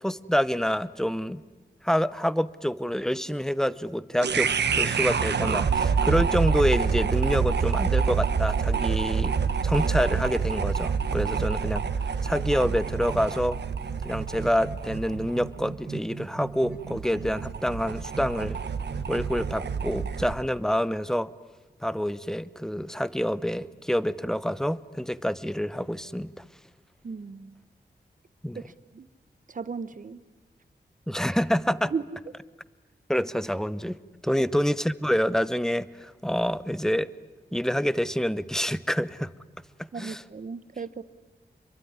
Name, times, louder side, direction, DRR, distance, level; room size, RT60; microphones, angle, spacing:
voice 1, 0.0-1.4 1.8-9.3 9.6-11.8 12.2-13.6 14.0-18.6 19.1-21.3 21.8-26.4 28.4-28.6 31.1-31.9 33.1-34.0 34.2-37.1 37.5-39.3 39.8-40.2, equal, 5° left, 16 dB, 0.8 m, -27 dB
sound 1, 4.2-20.4, right 6 dB, 85° right, 1.4 m, -27 dB
voice 2, 27.0-27.6 28.5-29.1 29.5-30.2 31.9-32.0 34.4-34.5 39.9-41.0, right 5 dB, 50° right, 14 dB, 1.1 m, -35 dB
26.5 x 22.5 x 9.7 m, 1.3 s
wide cardioid pair, 110°, 17 cm